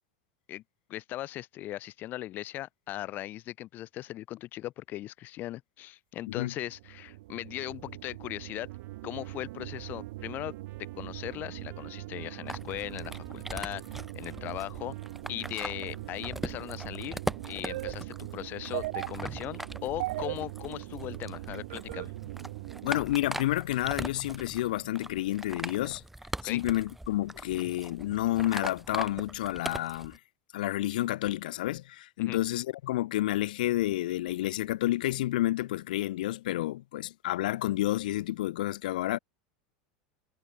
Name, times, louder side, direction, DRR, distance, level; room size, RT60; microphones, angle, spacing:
voice 1, 0.9-8.7 9.0-14.9 15.3-17.2 17.5-22.1 26.4-26.6 32.2-32.4, left 15 dB, 45° left, 0.8 m, -39 dB
sound 1, 6.5-23.0, right 19 dB, 70° right, 1.4 m, -40 dB
Trumpet, 8.7-16.7, right 17 dB, 50° right, 6.9 m, -62 dB
sound 2, 12.5-30.2, right 1 dB, 5° right, 1.9 m, -41 dB
voice 2, 22.8-26.0 26.4-30.2 30.5-39.2, left 15 dB, 75° left, 1.1 m, -30 dB
hypercardioid pair, 100°, 4 cm